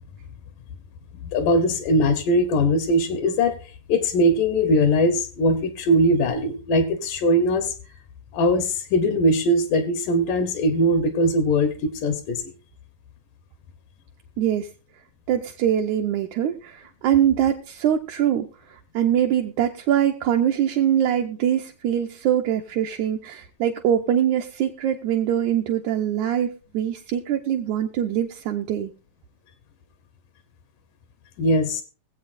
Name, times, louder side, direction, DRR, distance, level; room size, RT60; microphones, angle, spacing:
voice 1, 1.3-3.6 3.9-7.7 8.3-12.4 31.4-31.8, equal, 80° left, 8 dB, 2.6 m, -21 dB
voice 2, 14.4-14.7 15.3-28.9, right 10 dB, 75° right, 2 dB, 1.9 m, -23 dB
22.5 x 7.9 x 2.5 m, 0.34 s
omnidirectional pair, 3.8 m